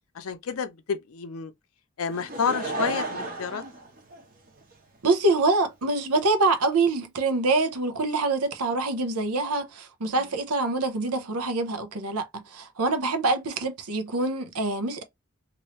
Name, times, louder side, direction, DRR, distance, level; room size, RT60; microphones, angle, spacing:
voice 1, 0.1-1.5 2.0-3.6 10.1-10.3, left 6 dB, 70° left, 0.5 m, -30 dB
Laughter / Crowd, 2.1-4.7 5.4-5.5, right 3 dB, 40° right, 0.9 m, -33 dB
voice 2, 5.0-15.0, right 3 dB, 85° right, 0.7 m, -25 dB
3.0 x 2.6 x 3.0 m
head